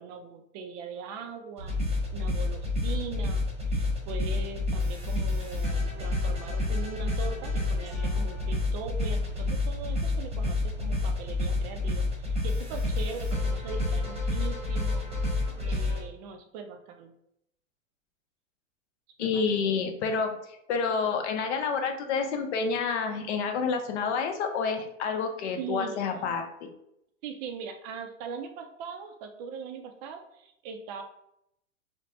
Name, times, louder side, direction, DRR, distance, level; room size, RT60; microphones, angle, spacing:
voice 1, 0.0-1.8 2.1-15.1 15.6-17.1 19.2-19.4 25.6-26.2 27.2-31.0, right 6 dB, 35° right, 5 dB, 0.4 m, -41 dB
sound 1, 1.6-16.0, left 2 dB, 15° right, 0.9 m, -29 dB
voice 2, 19.2-20.4 20.7-26.7, left 5 dB, 60° left, 5 dB, 0.7 m, -29 dB
3.1 x 2.1 x 2.7 m, 0.77 s
hypercardioid pair, 115°, 38 cm